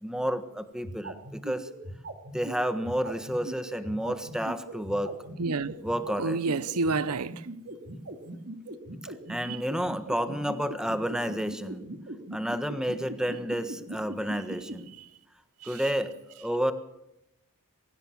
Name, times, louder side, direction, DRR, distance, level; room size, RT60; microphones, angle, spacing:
voice 1, 0.0-1.7 2.3-5.2 5.8-6.4 9.0-11.9 12.3-14.9 15.6-16.7, equal, 5° right, 1.4 m, -31 dB
sound 1, 0.8-14.8, right 1 dB, 50° right, 2.8 m, -39 dB
voice 2, 5.4-5.8 6.2-7.4 9.4-9.6 15.6-15.8, right 3 dB, 85° right, 0.8 m, -29 dB
23.0 x 16.0 x 7.3 m
head